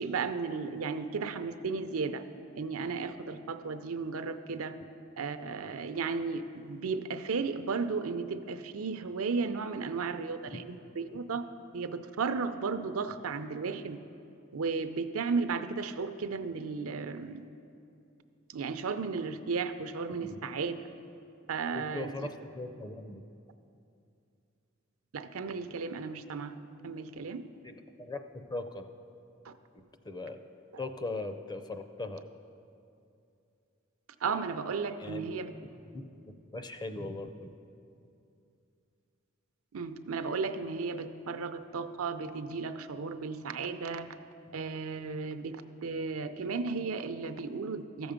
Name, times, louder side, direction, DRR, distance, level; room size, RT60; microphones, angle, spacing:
voice 1, 0.0-2.2 2.5-4.8 5.2-11.4 11.7-14.0 14.5-17.4 18.5-20.9 21.5-22.3 25.1-26.5 26.8-27.4 29.4-29.5 34.2-35.5 39.7-44.1 44.5-48.1, right 4 dB, 90° right, 10 dB, 0.5 m, -34 dB
voice 2, 21.7-23.2 27.6-28.8 29.7-30.4 30.8-32.2 35.0-35.3 35.9-36.0 36.5-37.5, left 2 dB, 20° left, 8 dB, 0.5 m, -39 dB
14.0 x 7.0 x 5.1 m, 2.6 s
head